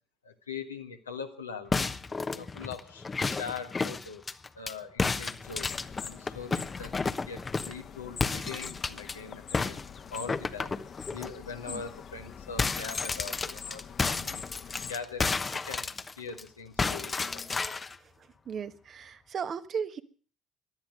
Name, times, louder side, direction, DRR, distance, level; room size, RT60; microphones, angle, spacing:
voice 1, 0.2-1.9 2.3-4.2 4.5-5.7 6.0-6.9 7.3-9.8 10.1-10.7 11.1-14.4 14.9-15.9 16.2-17.8, left 5 dB, 85° left, 4 dB, 1.6 m, -42 dB
sound 1, 1.7-4.7 5.0-7.8 8.2-9.1 9.5-11.3 11.7-11.9 12.1-16.4 16.8-18.0, left 4 dB, 25° left, 1.1 m, -32 dB
sound 2, 5.4-14.9, left 7 dB, 45° left, 1.5 m, -45 dB
voice 2, 18.5-20.0, right 6 dB, 45° right, 10 dB, 1.3 m, -35 dB
18.5 x 12.0 x 6.3 m, 0.42 s
figure-of-eight pair, 55°, 0 cm